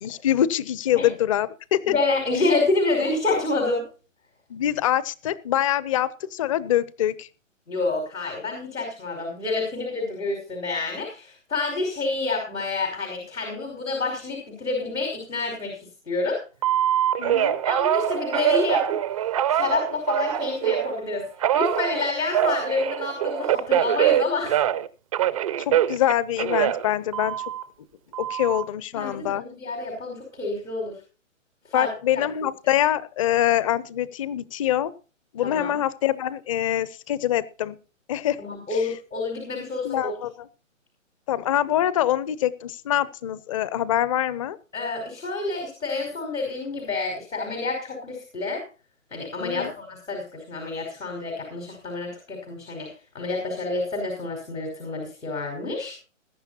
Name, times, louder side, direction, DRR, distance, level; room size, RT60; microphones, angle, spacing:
voice 1, 0.0-1.9 4.5-7.3 17.2-17.6 25.6-27.4 28.2-29.4 31.7-34.9 35.3-37.8 38.1-38.4 38.7-38.9 39.8-40.5 41.3-44.6 49.4-49.7, left 12 dB, 25° left, 19 dB, 0.7 m, -24 dB
voice 2, 1.9-3.8 7.7-16.4 17.6-19.0 19.5-21.3 21.5-24.6 28.9-31.0 31.7-32.2 35.4-35.8 38.4-40.1 44.7-48.6 49.1-52.9 53.1-56.0, left 3 dB, 85° left, 1 dB, 5.4 m, -28 dB
Telephone, 16.6-20.9 21.4-24.9 25.1-27.6 28.1-28.6, right 11 dB, 25° right, 0.5 m, -24 dB
21.0 x 10.5 x 2.9 m, 0.36 s
hypercardioid pair, 140°, 39 cm